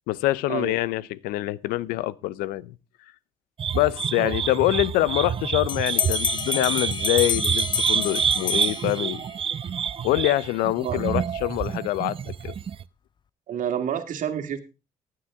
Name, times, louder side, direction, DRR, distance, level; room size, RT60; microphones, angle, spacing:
voice 1, 0.1-2.7 3.7-9.2 10.0-12.5, left 16 dB, 90° left, 0.6 m, -25 dB
sound 1, 3.6-12.8, right 8 dB, 40° right, 0.5 m, -27 dB
Bell, 5.7-9.3, left 7 dB, 30° left, 0.5 m, -29 dB
voice 2, 13.5-14.6, right 9 dB, 65° right, 2.0 m, -29 dB
15.5 x 9.2 x 3.6 m
cardioid pair, 80°, 15 cm